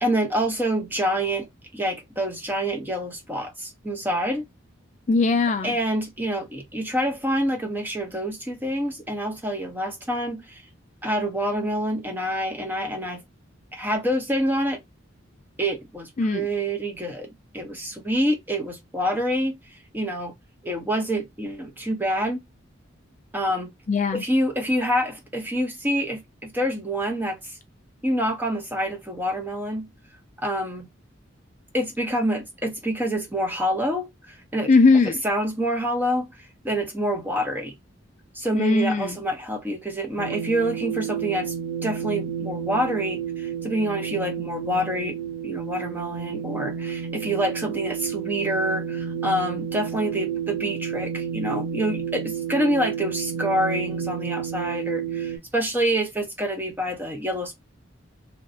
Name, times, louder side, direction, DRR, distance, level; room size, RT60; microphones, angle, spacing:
voice 1, 0.0-1.5 1.7-4.4 5.6-10.6 11.0-13.2 13.7-14.8 15.6-20.3 20.6-22.4 23.3-23.7 24.1-27.6 28.0-29.9 30.4-30.9 31.7-34.7 35.2-37.7 38.3-41.5 41.8-45.2 45.4-57.5, equal, 10° right, 0.6 m, -27 dB
voice 2, 5.1-5.8 16.2-16.5 23.9-24.2 34.7-35.2 38.5-39.2, left 3 dB, 35° left, 0.3 m, -20 dB
sound 1, 40.2-55.4, right 8 dB, 65° right, 0.9 m, -31 dB
2.9 x 2.6 x 2.5 m
head